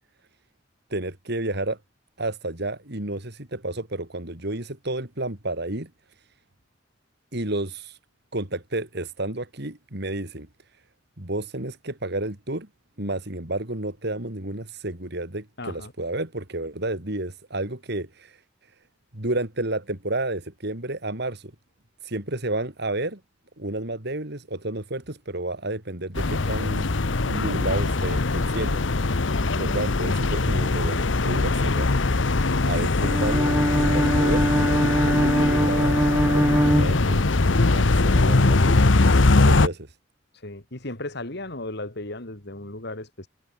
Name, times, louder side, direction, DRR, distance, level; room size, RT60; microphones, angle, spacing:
voice 1, 0.9-1.8 2.2-5.9 7.3-8.0 8.3-10.5 11.2-12.7 13.0-18.4 19.1-21.5 22.0-23.2 23.6-26.9 27.3-28.8 29.6-31.9 32.3-39.1 39.4-39.9, right 2 dB, 60° right, 3.7 m, -31 dB
voice 2, 15.6-15.9 40.3-43.3, left 2 dB, 60° left, 3.6 m, -35 dB
sound 1, 26.1-39.7, left 3 dB, 75° left, 1.0 m, -21 dB
Bowed string instrument, 33.0-37.6, equal, 10° right, 1.2 m, -22 dB
head